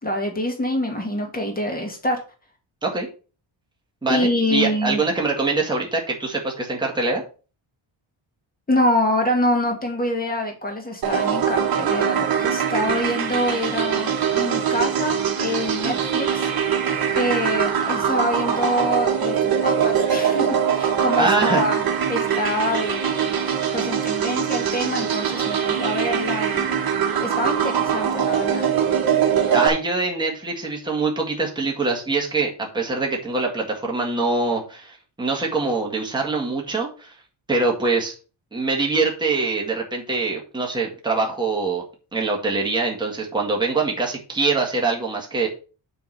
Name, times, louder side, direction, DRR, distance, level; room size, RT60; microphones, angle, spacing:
voice 1, 0.0-2.2 4.1-5.0 8.7-21.8 22.1-26.8 27.2-28.7, left 1 dB, 20° left, 2 dB, 2.2 m, -25 dB
voice 2, 4.0-7.2 15.8-16.0 21.2-21.6 29.5-37.1 37.5-38.1 38.5-41.8 42.1-45.5, right 3 dB, 10° right, -1 dB, 1.9 m, -24 dB
sound 1, 11.0-29.7, right 8 dB, 45° right, 1.5 m, -22 dB
7.0 x 3.9 x 6.5 m, 0.36 s
cardioid pair, 130°, 49 cm